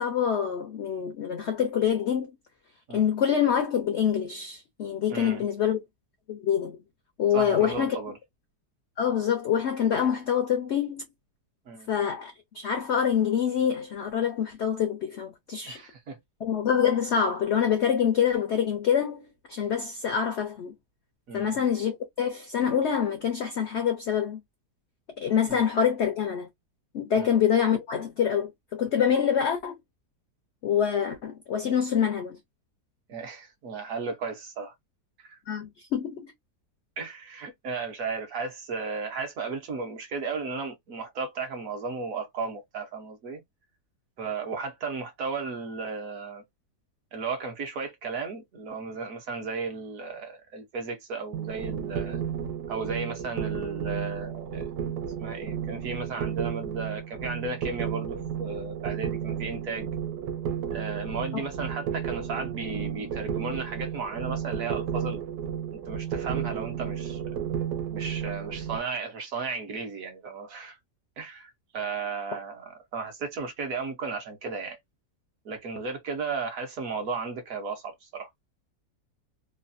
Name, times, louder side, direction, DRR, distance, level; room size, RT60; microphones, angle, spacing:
voice 1, 0.0-2.3 2.9-5.8 6.3-6.8 7.2-8.0 9.0-11.0 11.9-15.8 16.4-20.7 21.3-24.4 25.2-26.5 26.9-29.8 30.6-32.4 35.5-36.3 61.3-61.4, left 8 dB, 75° left, 0.6 m, -26 dB
voice 2, 5.1-5.4 7.3-8.2 11.7-11.9 15.6-16.2 21.3-21.6 25.5-25.6 27.1-27.4 33.1-34.7 35.2-35.4 37.0-43.4 44.2-46.4 47.1-52.2 52.7-54.6 55.2-59.9 60.7-65.2 65.9-67.2 67.9-70.8 71.2-74.8 75.4-78.3, right 4 dB, 60° right, 1.1 m, -34 dB
sound 1, 51.3-68.8, right 8 dB, 80° right, 1.2 m, -33 dB
3.2 x 2.2 x 2.5 m
omnidirectional pair, 1.8 m